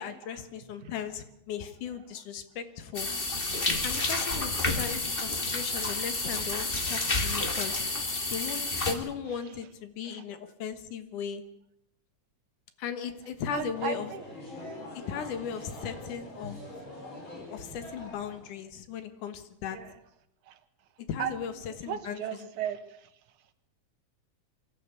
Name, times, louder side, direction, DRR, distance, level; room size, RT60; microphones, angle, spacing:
voice 1, 0.0-3.1 3.8-7.9 8.3-11.4 12.8-14.1 15.1-16.6 17.5-19.8 21.1-22.2, left 7 dB, 85° left, 10 dB, 3.0 m, -37 dB
sound 1, 2.9-8.9, left 2 dB, 25° left, 1.6 m, -30 dB
voice 2, 13.5-14.2 19.7-19.9 20.4-20.6 21.2-21.4 21.9-23.1, right 9 dB, 75° right, 9 dB, 2.7 m, -36 dB
sound 2, 13.7-18.6, left 1 dB, 40° left, 5.1 m, -43 dB
23.5 x 13.5 x 8.4 m, 0.78 s
omnidirectional pair, 3.5 m